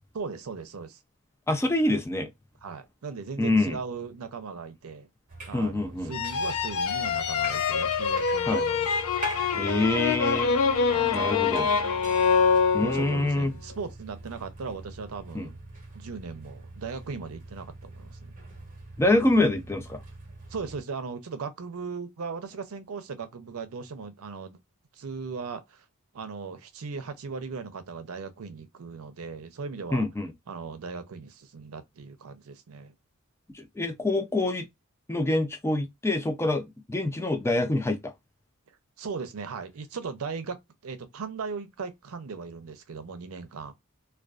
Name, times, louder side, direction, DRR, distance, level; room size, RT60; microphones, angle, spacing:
voice 1, 0.1-1.0 2.6-5.1 5.5-8.9 9.2-9.7 10.9-11.2 12.8-15.6 15.9-18.3 20.5-24.6 24.9-25.8 26.1-30.1 30.5-32.9 39.0-40.6 40.8-43.7, right 5 dB, 80° right, 0.5 m, -38 dB
voice 2, 1.5-2.3 3.4-3.8 5.5-6.1 8.5-8.6 9.5-10.5 11.1-11.7 12.7-13.5 15.3-15.5 19.0-20.0 29.9-30.3 33.5-34.7 35.1-38.1, left 2 dB, 10° left, 0.3 m, -26 dB
sound 1, 5.3-20.8, right 1 dB, 40° right, 0.8 m, -42 dB
sound 2, 6.1-13.3, left 5 dB, 70° left, 0.4 m, -25 dB
2.4 x 2.3 x 2.2 m
head